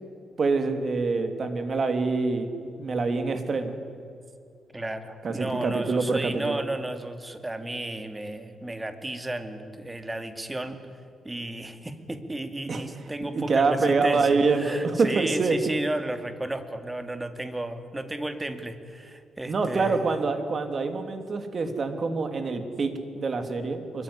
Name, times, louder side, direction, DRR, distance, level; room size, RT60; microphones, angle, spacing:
voice 1, 0.4-3.7 5.2-6.6 12.7-12.9 13.2-15.6 19.5-24.0, right 4 dB, 40° right, 7 dB, 3.0 m, -26 dB
voice 2, 4.7-10.8 11.2-20.1, right 1 dB, 10° right, 8 dB, 2.3 m, -33 dB
25.0 x 22.5 x 9.9 m, 2.4 s
cardioid pair, 125°, 0 cm